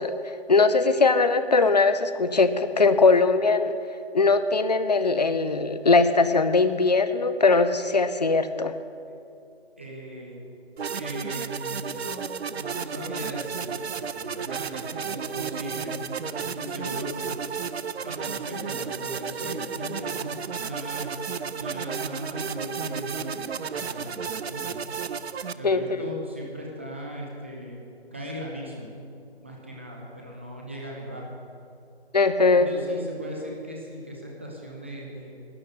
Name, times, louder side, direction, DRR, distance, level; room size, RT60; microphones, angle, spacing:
voice 1, 0.0-3.7 4.1-8.7 25.6-25.8 32.1-32.7, left 3 dB, 40° left, 12 dB, 0.6 m, -20 dB
voice 2, 9.8-10.3 10.9-12.3 12.5-16.0 16.3-17.3 18.0-21.1 21.5-24.8 25.6-27.8 28.1-28.9 29.4-31.3 32.5-35.3, equal, 10° right, -1 dB, 0.7 m, -38 dB
sound 1, 10.8-25.5, right 6 dB, 75° right, 0.6 m, -33 dB
12.0 x 6.6 x 9.3 m, 2.5 s
figure-of-eight pair, 165°, 32 cm